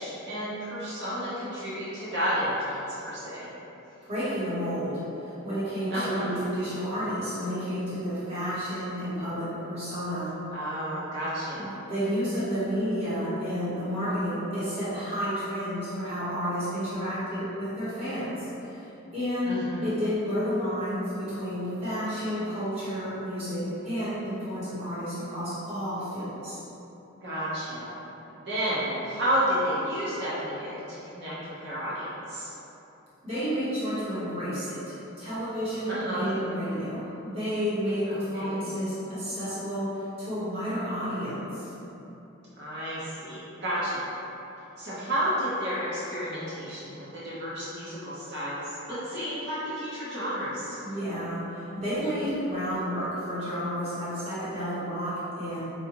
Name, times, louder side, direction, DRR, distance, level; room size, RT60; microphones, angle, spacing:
voice 1, 0.0-3.5 5.9-6.4 10.5-11.7 19.4-19.9 27.2-28.0 28.4-32.5 35.9-36.4 38.1-38.8 42.6-44.0 44.8-50.8, equal, 50° right, -10 dB, 0.9 m, -31 dB
voice 2, 4.0-10.3 11.5-26.6 33.2-41.7 50.8-55.6, equal, 30° right, -13 dB, 1.2 m, -31 dB
4.8 x 2.5 x 3.0 m, 3.0 s
head